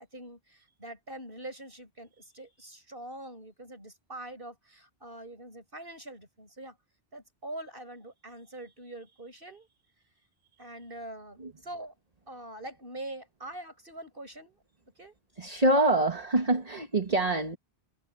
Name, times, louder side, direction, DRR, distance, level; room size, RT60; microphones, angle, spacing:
voice 1, 0.0-6.8 7.1-9.7 10.6-11.9 12.3-14.6 15.0-15.1, right 1 dB, 55° right, 7.5 m, -44 dB
voice 2, 15.4-17.6, right 2 dB, 35° right, 1.8 m, -25 dB
omnidirectional pair, 1.1 m